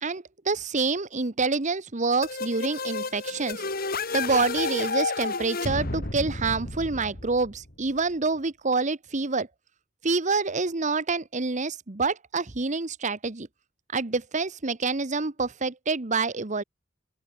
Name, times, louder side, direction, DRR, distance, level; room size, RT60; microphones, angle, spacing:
voice 1, 0.0-3.6 4.1-9.5 10.0-13.5 13.9-16.6, right 4 dB, 35° right, 1.1 m, -27 dB
sound 1, 2.2-7.9, left 3 dB, 45° left, 3.5 m, -31 dB
open air
head